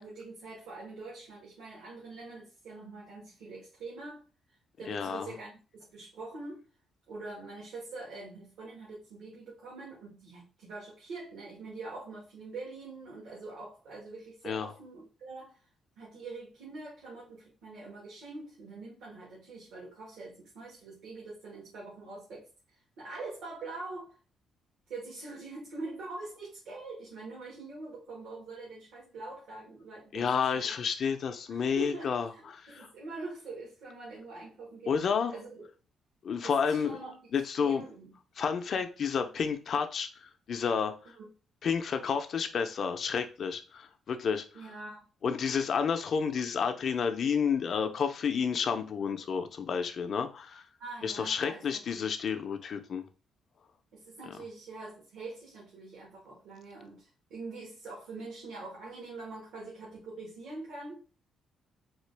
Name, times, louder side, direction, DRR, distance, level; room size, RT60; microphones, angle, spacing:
voice 1, 0.0-6.6 7.1-15.7 16.0-24.2 24.9-30.7 31.5-34.9 35.3-35.7 36.4-37.3 37.6-38.2 41.1-41.3 44.5-45.0 50.8-52.0 53.9-61.0, right 3 dB, 85° right, 1.4 m, -44 dB
voice 2, 4.9-5.3 14.4-14.7 30.1-32.3 32.6-32.9 34.9-35.3 36.2-37.0 37.3-37.8 38.4-40.9 41.6-44.4 45.2-50.6 51.0-53.1, left 6 dB, 55° left, 0.5 m, -30 dB
3.7 x 2.3 x 3.3 m
cardioid pair, 110°, 0 cm